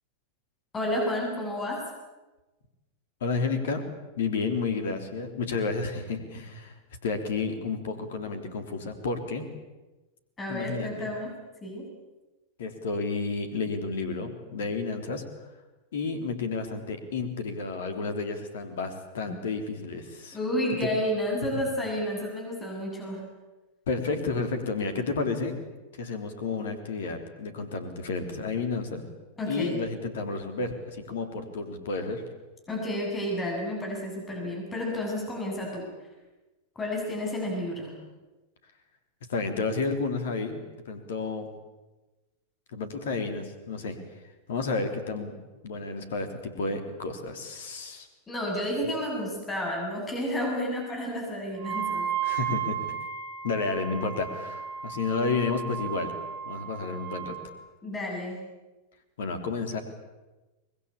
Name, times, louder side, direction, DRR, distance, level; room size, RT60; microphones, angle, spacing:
voice 1, 0.7-1.8 10.4-11.3 11.6-11.9 19.3-19.4 20.3-23.2 29.4-29.8 32.7-35.8 36.8-37.9 48.3-52.1 57.8-58.4, left 1 dB, 15° left, 0 dB, 7.9 m, -31 dB
voice 2, 3.2-3.8 4.2-6.7 7.0-9.5 10.5-11.1 12.6-15.2 15.9-20.4 20.8-20.9 23.9-25.5 26.0-29.0 29.4-32.2 39.3-41.5 42.7-44.0 44.5-45.4 45.6-48.1 52.2-52.8 53.4-56.1 56.5-57.4 59.2-59.8, left 4 dB, 60° left, 7 dB, 3.5 m, -31 dB
Wind instrument woodwind instrument, 51.6-57.5, right 8 dB, 55° right, 4.1 m, -34 dB
24.5 x 21.5 x 8.7 m, 1.1 s
figure-of-eight pair, 90°, 0 cm